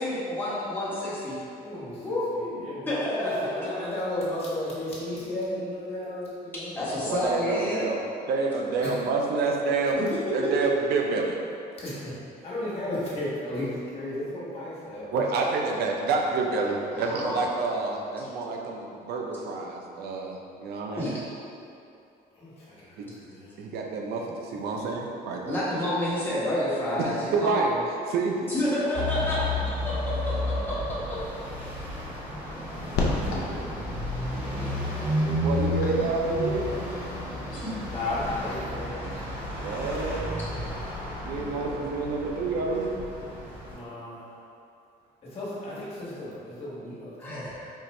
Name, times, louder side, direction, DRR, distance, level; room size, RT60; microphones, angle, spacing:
voice 1, 0.0-1.4 2.0-3.7 5.3-5.7 6.7-7.9 9.9-10.7 16.9-17.4 21.0-21.1 25.4-27.8 28.5-30.8 31.1-31.2 34.6-34.9 35.9-36.1 37.5-37.7 47.2-47.7, left 1 dB, 10° left, -10 dB, 1.3 m, -29 dB
voice 2, 1.6-2.0 2.3-6.7 8.8-8.9 11.8-12.1 12.4-15.1 22.4-23.5 28.6-28.7 32.8-33.7 37.7-39.3 41.2-41.9 43.6-44.2 45.3-47.4, left 1 dB, 35° left, -9 dB, 1.4 m, -35 dB
voice 3, 7.1-8.0 8.3-10.0 10.3-11.4 15.1-21.2 23.0-23.1 23.6-25.6 27.0-28.5 35.4-36.7 39.6-40.3 41.2-42.9, right 3 dB, 70° right, 1 dB, 0.5 m, -28 dB
sound 1, 28.9-43.7, left 1 dB, 10° right, 1.3 m, -32 dB
sound 2, 32.9-38.6, left 2 dB, 80° left, 0.6 m, -36 dB
4.4 x 2.4 x 3.2 m, 2.6 s
cardioid pair, 110°, 17 cm